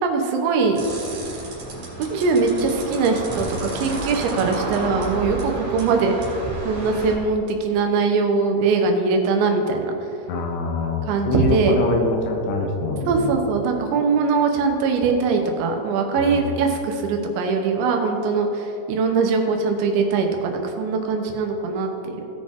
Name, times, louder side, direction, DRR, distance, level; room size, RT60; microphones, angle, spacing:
voice 1, 0.0-0.8 2.0-6.2 6.6-9.9 11.1-11.8 13.1-22.2, right 4 dB, 90° right, 3 dB, 3.4 m, -21 dB
sound 1, 0.8-7.2, right 2 dB, 50° right, 3.7 m, -31 dB
voice 2, 10.3-13.3 16.2-16.4, left 3 dB, 80° left, 1 dB, 3.2 m, -24 dB
17.5 x 6.3 x 3.7 m, 2.8 s
omnidirectional pair, 5.1 m